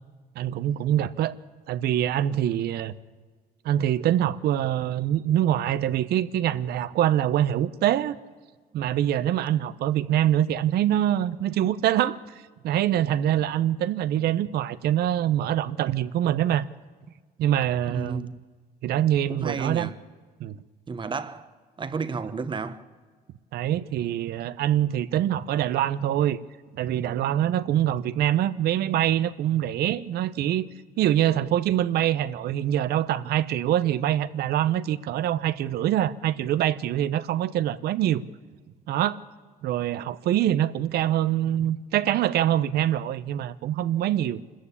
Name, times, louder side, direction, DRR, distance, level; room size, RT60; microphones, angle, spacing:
voice 1, 0.3-1.4 1.7-2.9 3.6-8.2 8.7-12.2 12.6-16.6 17.4-18.3 18.8-19.9 20.4-20.6 23.5-26.4 26.7-30.7 31.0-38.2 38.9-39.2 39.6-44.4, right 11 dB, 70° right, 0.8 m, -24 dB
voice 2, 17.9-18.3 19.3-20.0 20.9-21.5 21.8-22.8, right 4 dB, 30° right, 1.1 m, -31 dB
26.0 x 14.0 x 8.4 m
cardioid pair, 110°, 17 cm